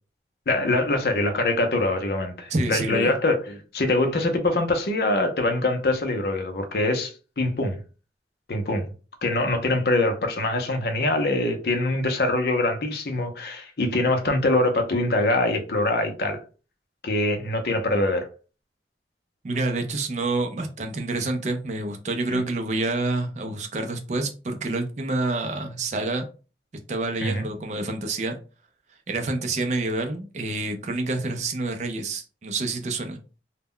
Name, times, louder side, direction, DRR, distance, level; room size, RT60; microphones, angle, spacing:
voice 1, 0.5-7.8 8.5-8.9 9.2-16.4 17.0-18.2 22.3-22.4 27.2-27.5, left 2 dB, 60° left, 0.5 m, -24 dB
voice 2, 2.5-3.1 19.4-26.3 26.9-28.4 29.1-33.2, right 2 dB, 40° right, 0.4 m, -28 dB
2.1 x 2.0 x 3.6 m
head